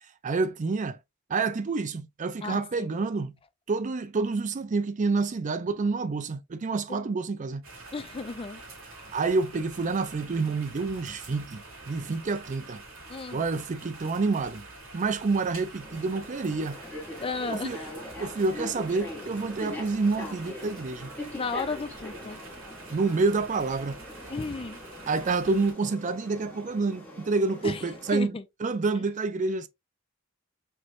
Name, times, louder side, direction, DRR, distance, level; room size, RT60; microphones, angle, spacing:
voice 1, 0.2-1.0 1.3-3.4 3.7-7.6 9.1-12.8 13.3-14.7 14.9-16.8 17.5-17.8 18.2-21.1 22.9-24.0 25.1-28.3 28.6-29.7, right 3 dB, 40° right, 0.4 m, -28 dB
sound 1, 7.6-25.7, right 2 dB, 75° right, 2.5 m, -46 dB
voice 2, 7.9-8.6 13.1-13.4 17.2-17.9 21.3-22.4 24.3-24.8 27.6-27.8 28.1-28.4, left 4 dB, 25° left, 0.4 m, -34 dB
sound 2, 15.8-28.1, left 1 dB, 5° left, 1.5 m, -42 dB
4.4 x 3.1 x 2.4 m
head